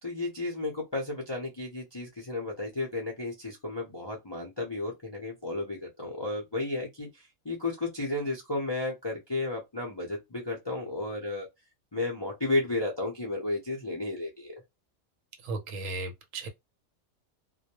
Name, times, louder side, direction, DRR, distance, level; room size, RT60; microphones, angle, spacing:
voice 1, 0.0-11.5 11.9-14.5, left 2 dB, 35° left, 0.4 m, -33 dB
voice 2, 15.4-16.5, right 2 dB, 70° right, 1.0 m, -35 dB
2.2 x 2.1 x 2.8 m
omnidirectional pair, 1.5 m